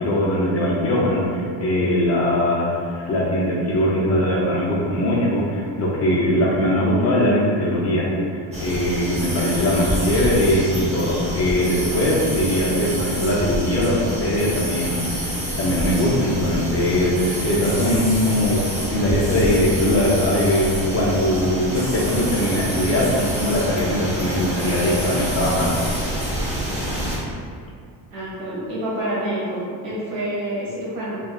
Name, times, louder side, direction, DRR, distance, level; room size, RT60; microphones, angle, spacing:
voice 1, 0.0-8.1 8.3-25.8, left 1 dB, 35° left, -5 dB, 0.4 m, -21 dB
sound 1, 8.5-27.2, equal, 15° right, 0.5 m, -27 dB
voice 2, 28.1-31.2, right 1 dB, 85° right, -7 dB, 1.3 m, -27 dB
2.8 x 2.3 x 2.2 m, 2.3 s
cardioid pair, 125°, 47 cm